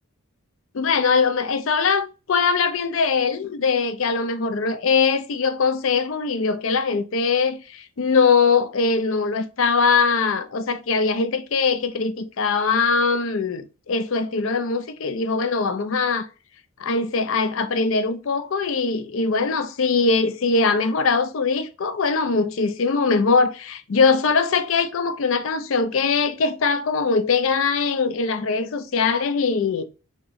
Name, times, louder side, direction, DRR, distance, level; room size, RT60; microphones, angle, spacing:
voice 1, 0.7-16.3 16.8-29.8, left 4 dB, 65° left, 0.5 m, -21 dB
3.7 x 3.0 x 3.9 m
head